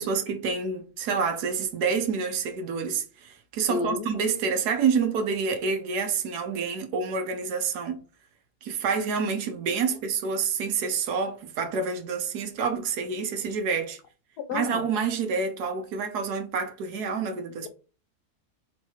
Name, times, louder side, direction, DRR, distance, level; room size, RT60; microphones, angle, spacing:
voice 1, 0.0-8.0 8.6-14.0 14.5-17.7, right 5 dB, 85° right, 1.3 m, -28 dB
voice 2, 3.7-4.1 14.4-14.9, left 5 dB, 80° left, 1.2 m, -31 dB
3.3 x 3.0 x 4.4 m
omnidirectional pair, 1.7 m